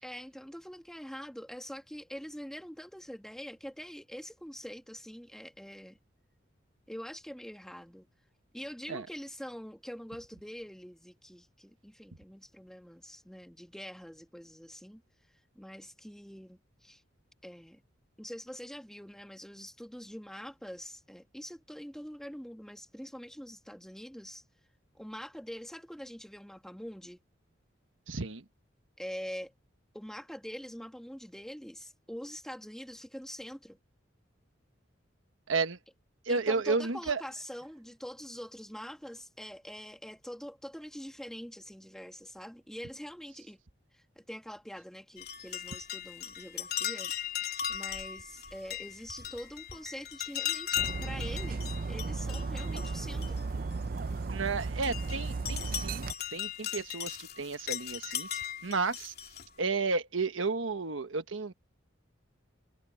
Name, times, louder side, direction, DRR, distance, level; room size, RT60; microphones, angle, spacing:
voice 1, 0.0-6.0 6.9-8.1 8.5-15.0 15.5-17.0 17.4-17.8 18.2-24.4 24.9-27.2 29.0-29.5 29.9-33.8 36.3-43.6 43.9-47.1 47.7-53.4, equal, 5° left, 2.0 m, -44 dB
voice 2, 28.1-28.4 35.5-35.8 36.2-37.2 54.3-59.1 59.6-61.5, right 4 dB, 80° right, 1.2 m, -32 dB
sound 1, 45.2-54.0 54.5-59.5, left 10 dB, 55° left, 2.9 m, -38 dB
Dog, 50.8-56.1, right 3 dB, 45° right, 0.5 m, -35 dB
head